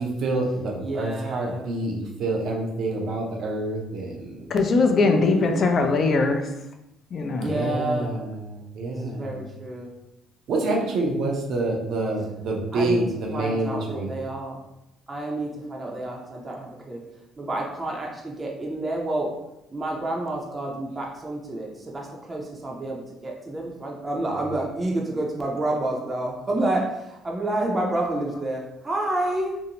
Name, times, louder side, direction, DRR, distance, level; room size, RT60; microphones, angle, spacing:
voice 1, 0.0-4.5 7.4-9.5 10.5-14.2 24.3-24.5, right 2 dB, 65° right, 0 dB, 0.6 m, -27 dB
voice 2, 0.8-1.7 4.9-5.7 7.3-8.1 8.9-9.9 12.7-13.0 13.3-14.6 15.1-17.0 17.4-19.3 19.7-21.7 21.9-23.0 23.2-26.8 27.2-29.5, right 1 dB, 25° right, -1 dB, 0.5 m, -29 dB
voice 3, 4.5-6.5 7.1-7.5, left 3 dB, 50° left, 5 dB, 0.4 m, -21 dB
2.6 x 2.0 x 2.8 m, 0.89 s
supercardioid pair, 80°, 0 cm